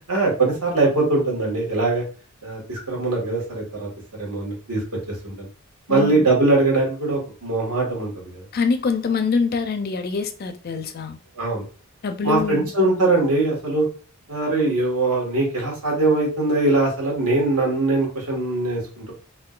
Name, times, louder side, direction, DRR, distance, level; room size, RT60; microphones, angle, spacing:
voice 1, 0.1-2.0 2.4-3.9 4.2-4.8 5.2-5.5 5.9-8.4 11.4-11.6 12.2-13.9 14.3-19.1, right 2 dB, 85° right, 1.6 m, -21 dB
voice 2, 5.9-6.3 8.5-11.2 12.0-12.7, left 5 dB, 45° left, 0.4 m, -24 dB
3.7 x 2.5 x 2.4 m
head